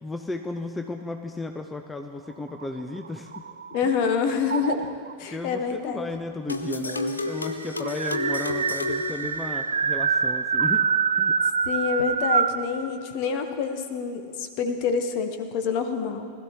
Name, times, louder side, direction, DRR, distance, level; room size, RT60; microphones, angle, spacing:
voice 1, 0.0-3.4 3.8-3.9 4.5-4.6 5.3-10.9 11.1-11.4, left 2 dB, 10° left, 5 dB, 0.6 m, -34 dB
sound 1, 2.5-4.0 4.5-5.1 6.1-6.2 6.5-6.6 6.9-12.6, right 6 dB, 70° right, 0.4 m, -26 dB
voice 2, 3.7-4.9 5.2-6.1 11.7-16.3, left 6 dB, 45° left, 7 dB, 1.1 m, -27 dB
sound 2, 6.5-10.0, left 2 dB, 80° left, 0.7 m, -31 dB
19.5 x 12.5 x 2.9 m, 2.3 s
figure-of-eight pair, 90°, 0 cm